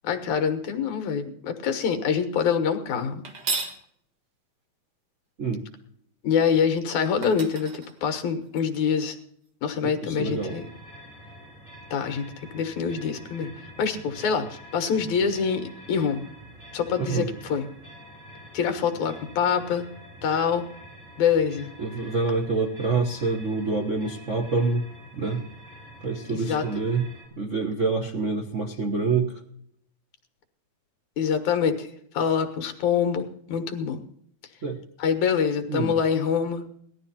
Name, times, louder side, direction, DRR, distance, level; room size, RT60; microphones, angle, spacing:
voice 1, 0.0-3.2 6.2-9.2 9.6-10.6 11.9-13.5 13.8-16.3 16.7-17.7 18.5-19.9 20.2-20.7 21.2-21.7 26.3-26.7 31.2-34.0 35.0-36.6, left 7 dB, 75° left, 7 dB, 2.9 m, -25 dB
sound 1, 3.2-3.8 6.7-6.8 7.2-8.6, right 3 dB, 40° right, 1.9 m, -33 dB
voice 2, 9.8-10.6 17.0-17.3 21.8-24.9 25.1-25.4 26.0-27.1 27.4-29.4 34.6-34.8 35.7-36.0, right 4 dB, 70° right, 3 dB, 0.7 m, -26 dB
sound 2, 10.2-27.3, right 1 dB, ahead, 7.2 m, -47 dB
18.5 x 13.0 x 4.3 m, 0.68 s
omnidirectional pair, 3.4 m